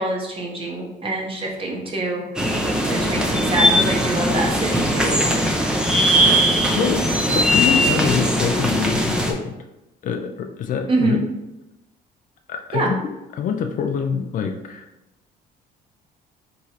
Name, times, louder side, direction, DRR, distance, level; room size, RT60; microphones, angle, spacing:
voice 1, 0.0-2.5 2.9-5.2 10.9-11.2 12.7-12.9, right 2 dB, 30° right, -2 dB, 1.0 m, -25 dB
sound 1, 2.4-9.3, equal, 5° right, 0.5 m, -19 dB
voice 2, 6.7-9.7 10.0-11.2 12.5-14.8, left 7 dB, 50° left, 6 dB, 0.4 m, -26 dB
3.7 x 3.0 x 2.8 m, 0.93 s
cardioid pair, 110°, 17 cm